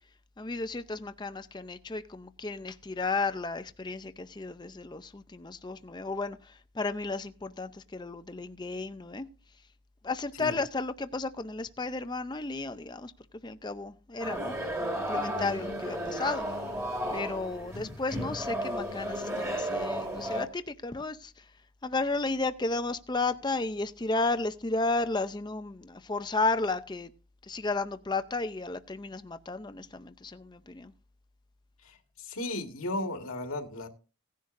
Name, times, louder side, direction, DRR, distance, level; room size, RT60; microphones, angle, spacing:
voice 1, 0.4-9.3 10.0-13.1 13.4-14.6 15.0-16.5 17.1-21.3 21.8-27.1 27.5-30.9, left 3 dB, 20° left, 0.5 m, -33 dB
sound 1, 14.2-20.5, equal, 15° right, 1.7 m, -33 dB
voice 2, 31.8-33.9, left 1 dB, 75° left, 1.8 m, -35 dB
17.0 x 10.5 x 2.6 m
head